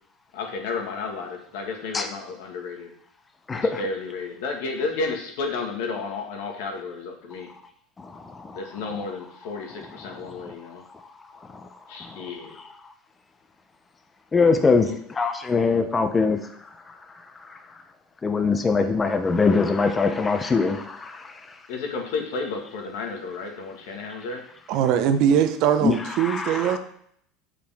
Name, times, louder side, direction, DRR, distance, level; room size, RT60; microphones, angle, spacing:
voice 1, 0.3-2.9 3.8-7.5 8.5-10.8 11.9-12.6 14.9-15.0 21.7-24.4, left 4 dB, 80° left, 2 dB, 1.5 m, -32 dB
voice 2, 3.5-3.8 8.0-8.9 9.8-10.5 10.9-11.0 11.4-11.7 12.0-12.7 14.3-17.8 18.2-21.6 25.8-26.8, left 4 dB, 15° left, 7 dB, 0.5 m, -24 dB
voice 3, 24.7-26.8, right 9 dB, 55° right, 9 dB, 0.6 m, -21 dB
7.2 x 4.9 x 3.4 m, 0.67 s
supercardioid pair, 145°, 0 cm